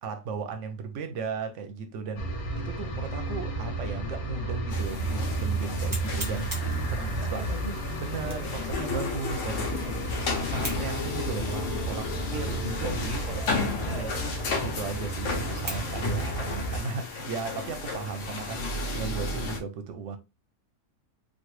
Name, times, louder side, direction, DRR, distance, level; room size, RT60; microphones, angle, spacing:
voice 1, 0.0-2.3 2.6-6.5 6.9-7.5 8.0-13.5 13.8-14.1 14.6-20.2, right 5 dB, 65° right, 0.8 m, -36 dB
sound 1, 2.2-16.8, right 2 dB, 90° left, 1.4 m, -33 dB
sound 2, 4.5-4.6 5.1-5.2 5.9-6.8 8.2-8.6 9.1-9.2 10.6-10.9 11.5-11.6 12.3-12.4 13.4-13.7 14.0-14.1 14.8-14.9 15.7-15.9 16.2-17.7 18.2-18.3 18.8-19.2, right 1 dB, 25° right, 0.4 m, -40 dB
sound 3, 4.7-19.6, left 3 dB, 65° left, 1.1 m, -33 dB
voice 2, 7.0-8.6 13.3-14.2, left 1 dB, 35° left, 0.7 m, -42 dB
3.1 x 2.3 x 3.0 m
omnidirectional pair, 1.5 m